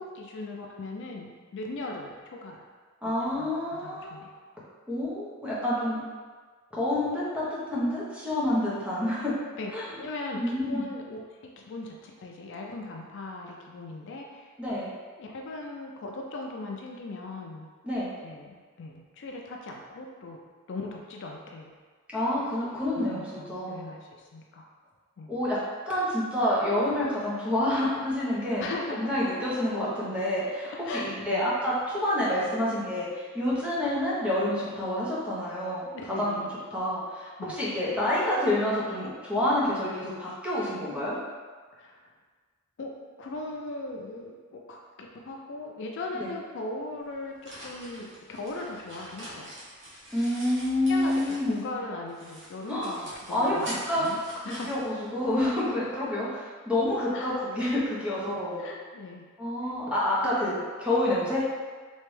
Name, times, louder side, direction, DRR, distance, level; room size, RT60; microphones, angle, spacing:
voice 1, 0.0-2.6 3.2-4.3 9.6-14.5 15.2-17.7 18.2-20.4 20.7-21.7 23.0-24.7 25.2-25.3 28.6-29.4 30.9-31.5 35.9-36.5 37.4-37.5 41.7-42.1 42.8-42.9 43.2-49.5 50.9-54.9 57.1-57.4 58.6-59.3 59.6-59.7 60.2-60.4, left 2 dB, 60° left, 0 dB, 0.4 m, -39 dB
voice 2, 3.0-4.2 4.9-6.0 6.7-9.3 9.7-9.8 10.3-10.9 14.6-14.9 17.8-18.1 22.1-23.9 25.3-25.6 25.9-28.7 29.0-35.9 36.2-41.2 46.2-46.3 50.1-51.6 52.7-52.9 53.3-54.1 54.3-58.6 59.4-61.4, left 1 dB, 5° right, -8 dB, 1.0 m, -28 dB
sound 1, 47.0-51.7 52.1-55.6, equal, 55° right, 1.0 m, -44 dB
3.3 x 3.2 x 3.2 m, 1.5 s
head